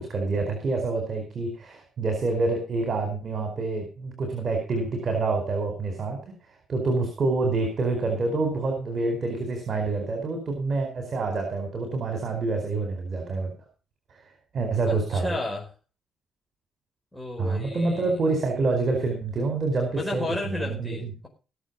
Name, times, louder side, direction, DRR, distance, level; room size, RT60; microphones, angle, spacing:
voice 1, 0.0-6.2 6.7-13.5 14.5-15.3 17.4-21.1, right 3 dB, 50° right, 4 dB, 4.5 m, -27 dB
voice 2, 14.9-15.7 17.1-18.1 19.9-21.3, left 2 dB, 10° left, -2 dB, 4.9 m, -32 dB
19.5 x 7.1 x 5.4 m, 0.35 s
cardioid pair, 90°, 0 cm